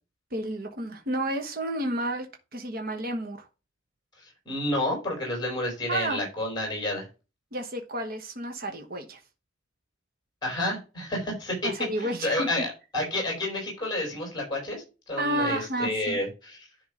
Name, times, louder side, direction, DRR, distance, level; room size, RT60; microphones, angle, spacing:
voice 1, 0.3-2.3 2.5-3.5 5.9-6.2 7.5-9.2 11.6-12.5 15.2-16.2, right 1 dB, 50° right, 4 dB, 1.2 m, -31 dB
voice 2, 4.4-7.1 10.4-11.7 12.0-12.7 12.9-16.7, left 1 dB, 20° left, -1 dB, 4.7 m, -30 dB
10.5 x 3.6 x 4.9 m, 0.29 s
head